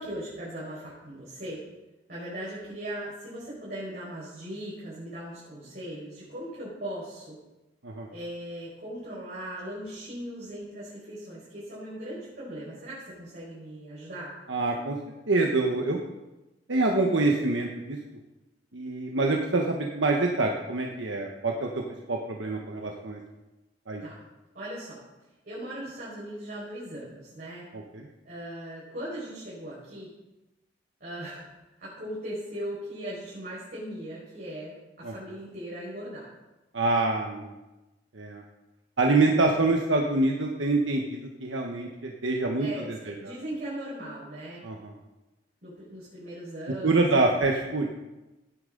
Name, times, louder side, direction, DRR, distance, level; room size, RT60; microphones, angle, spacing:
voice 1, 0.0-1.6 2.1-7.4 8.1-14.3 24.0-24.2 24.5-25.0 25.5-27.7 28.2-30.1 31.0-31.5 31.8-36.3 42.6-42.9 43.2-44.6 45.6-47.2, right 1 dB, 55° right, -9 dB, 5.3 m, -38 dB
voice 2, 14.5-15.0 15.3-16.0 16.7-18.0 18.7-21.8 22.1-23.2 23.9-24.0 27.7-28.1 35.0-35.1 36.7-37.6 38.1-38.4 39.0-43.3 44.6-44.9 46.8-47.9, right 2 dB, 85° right, 1 dB, 1.2 m, -26 dB
16.0 x 10.0 x 3.9 m, 1.0 s
head